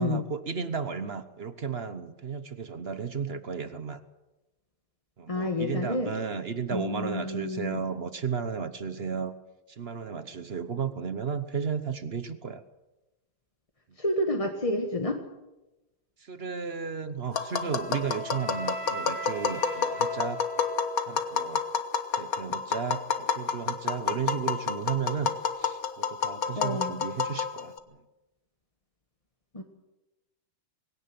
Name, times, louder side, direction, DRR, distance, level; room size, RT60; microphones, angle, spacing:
voice 1, 0.0-4.0 5.2-9.3 9.7-12.6 16.2-20.4 21.1-21.7 22.1-28.0, right 6 dB, 50° right, 11 dB, 0.7 m, -34 dB
voice 2, 5.3-6.1 6.7-7.8 14.0-15.2 26.6-27.0 29.5-29.6, left 1 dB, 20° left, 3 dB, 1.4 m, -29 dB
Tap, 17.3-27.8, left 6 dB, 45° left, 1.6 m, -29 dB
Wind instrument woodwind instrument, 17.6-21.7, equal, 80° right, 5.4 m, -39 dB
21.0 x 17.5 x 7.7 m, 1.0 s
omnidirectional pair, 2.4 m